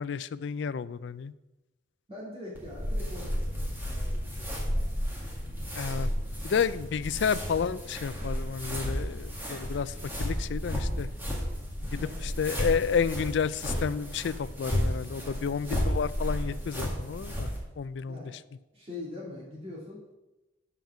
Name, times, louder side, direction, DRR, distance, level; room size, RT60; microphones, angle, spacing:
voice 1, 0.0-1.3 5.7-6.1 6.4-11.1 11.9-17.5 17.8-18.2, left 6 dB, 60° left, 16 dB, 0.3 m, -31 dB
voice 2, 2.1-4.9 11.8-12.3 15.1-15.4 18.0-18.3 18.7-20.2, left 2 dB, 30° right, -6 dB, 2.5 m, -43 dB
sound 1, 2.5-17.6, equal, 10° right, 1.9 m, -33 dB
7.1 x 5.8 x 7.3 m, 1.0 s
head